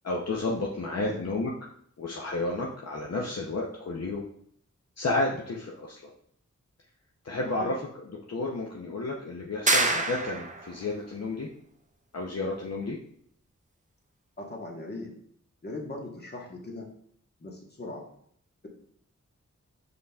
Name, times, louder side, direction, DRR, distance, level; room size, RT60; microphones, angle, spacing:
voice 1, 0.0-1.5 2.0-4.2 5.0-6.0 7.2-7.7 8.3-11.5 12.1-13.0, left 2 dB, 60° left, -2 dB, 0.6 m, -31 dB
voice 2, 0.9-1.2 7.5-7.8 14.4-15.1 15.6-16.9 17.4-18.0, left 2 dB, 35° left, 0 dB, 1.1 m, -39 dB
sound 1, 9.7-10.7, right 3 dB, 25° right, 0.5 m, -25 dB
5.2 x 4.0 x 2.3 m, 0.65 s
wide cardioid pair, 65°, 30 cm